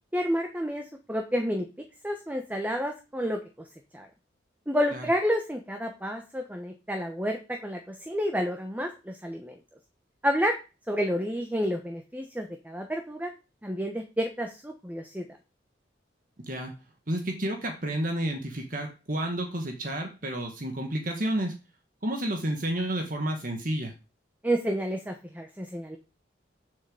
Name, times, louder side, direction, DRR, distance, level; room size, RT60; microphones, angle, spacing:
voice 1, 0.1-1.7 2.0-3.4 3.9-4.1 4.7-9.6 10.2-10.6 10.9-13.3 13.6-15.3 24.4-26.0, equal, 10° right, 4 dB, 1.1 m, -30 dB
voice 2, 17.1-21.5 22.0-23.9, right 1 dB, 45° right, 4 dB, 1.7 m, -30 dB
7.8 x 6.8 x 7.8 m, 0.31 s
head